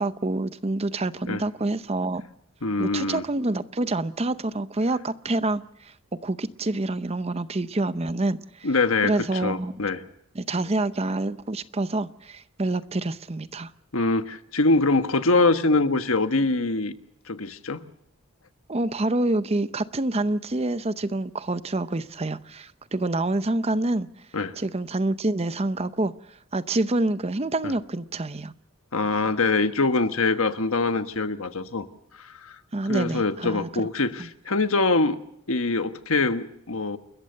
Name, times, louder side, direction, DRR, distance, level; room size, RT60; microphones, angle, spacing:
voice 1, 0.0-2.2 2.8-8.7 9.0-9.8 10.3-13.7 18.7-24.1 24.6-26.1 26.5-28.5 32.7-33.7 34.2-34.3, right 2 dB, 30° right, 14 dB, 0.7 m, -27 dB
voice 2, 2.6-3.2 8.6-10.0 13.9-16.9 17.3-17.8 24.3-24.6 27.6-27.7 28.9-31.9 32.2-32.6 32.8-35.2 35.5-37.0, left 3 dB, 70° left, 10 dB, 1.3 m, -24 dB
29.0 x 14.0 x 6.6 m, 0.79 s
head